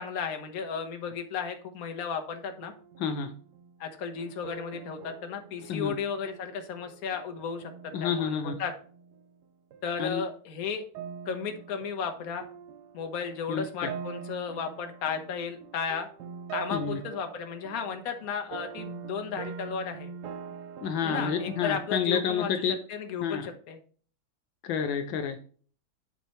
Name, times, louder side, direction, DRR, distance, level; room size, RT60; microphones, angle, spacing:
voice 1, 0.0-2.7 3.8-8.7 9.8-10.8 11.2-12.4 12.9-16.1 16.5-20.1 21.0-23.8, left 6 dB, 50° left, 6 dB, 1.4 m, -34 dB
sound 1, 2.6-9.4 9.7-10.0 10.9-21.9, right 7 dB, 65° right, 1.0 m, -44 dB
voice 2, 3.0-3.3 5.7-5.9 7.9-8.5 10.0-10.2 13.5-13.6 16.7-17.0 20.8-22.7 23.2-23.4 24.6-25.4, left 7 dB, 75° left, 7 dB, 1.4 m, -29 dB
8.1 x 5.5 x 3.0 m, 0.43 s
omnidirectional pair, 2.2 m